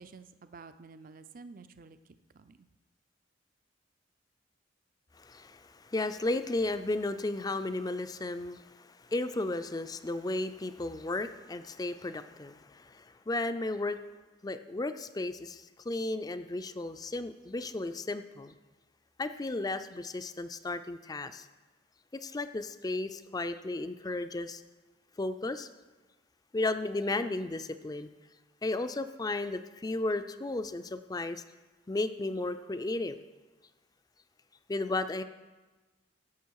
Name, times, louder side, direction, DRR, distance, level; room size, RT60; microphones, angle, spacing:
voice 1, 0.0-2.7, right 4 dB, 45° right, 11 dB, 0.5 m, -51 dB
voice 2, 5.2-14.0 14.4-18.5 19.2-21.5 22.1-24.6 25.2-25.7 26.5-28.1 28.6-31.4 31.9-33.2 34.7-35.2, left 2 dB, 20° left, 11 dB, 0.4 m, -34 dB
16.0 x 6.8 x 4.7 m, 1.2 s
head